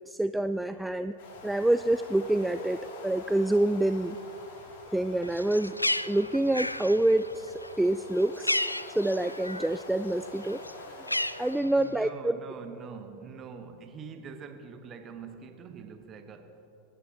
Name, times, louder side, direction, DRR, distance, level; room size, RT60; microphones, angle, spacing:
voice 1, 0.1-1.1 1.4-2.8 3.0-4.2 4.9-5.7 6.1-8.6 9.0-10.6 11.4-12.4, right 1 dB, 5° right, 0.3 m, -27 dB
sound 1, 1.2-11.6, left 2 dB, 50° left, 2.7 m, -47 dB
Bird, 5.2-9.8 10.1-12.1, left 1 dB, 85° left, 0.3 m, -33 dB
voice 2, 11.6-16.6, right 6 dB, 30° right, 1.2 m, -45 dB
26.5 x 12.0 x 2.9 m
figure-of-eight pair, 90°, 0 cm